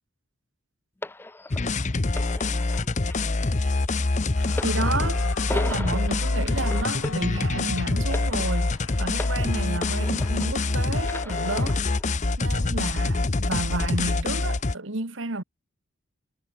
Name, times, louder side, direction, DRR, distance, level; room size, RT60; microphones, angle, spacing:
sound 1, 1.0-10.7 11.0-12.1 12.9-13.0, left 2 dB, 10° left, 0.4 m, -38 dB
sound 2, 1.5-14.8, left 2 dB, 35° left, 0.7 m, -25 dB
voice 1, 1.7-3.6, right 2 dB, 35° right, 6.2 m, -57 dB
Clapping / Cheering / Applause, 4.3-11.7, left 4 dB, 90° left, 7.3 m, -43 dB
voice 2, 4.6-11.8 12.4-15.4, right 2 dB, 70° right, 1.8 m, -31 dB
head